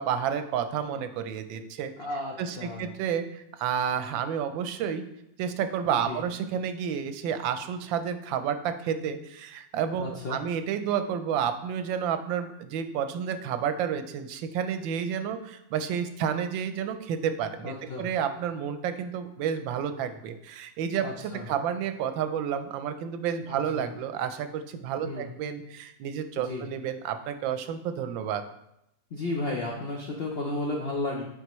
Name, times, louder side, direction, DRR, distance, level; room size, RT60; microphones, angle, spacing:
voice 1, 0.0-1.9 2.4-5.0 5.4-28.4, right 8 dB, 85° right, 9 dB, 1.3 m, -30 dB
voice 2, 2.0-2.9 5.9-6.2 10.0-10.4 17.6-18.1 21.0-21.4 23.5-23.9 25.0-25.3 26.4-26.7 29.1-31.2, left 2 dB, 70° left, -1 dB, 0.5 m, -33 dB
8.0 x 4.4 x 3.0 m, 0.81 s
omnidirectional pair, 2.0 m